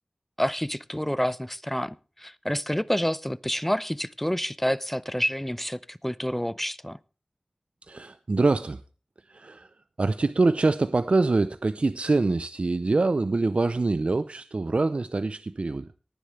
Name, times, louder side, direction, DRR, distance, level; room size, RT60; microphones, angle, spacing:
voice 1, 0.4-7.0, equal, 10° left, 0.6 m, -28 dB
voice 2, 7.8-8.8 9.3-9.7 10.0-15.9, right 3 dB, 75° right, 0.5 m, -25 dB
18.5 x 10.0 x 3.2 m
wide cardioid pair, 50°, 2 cm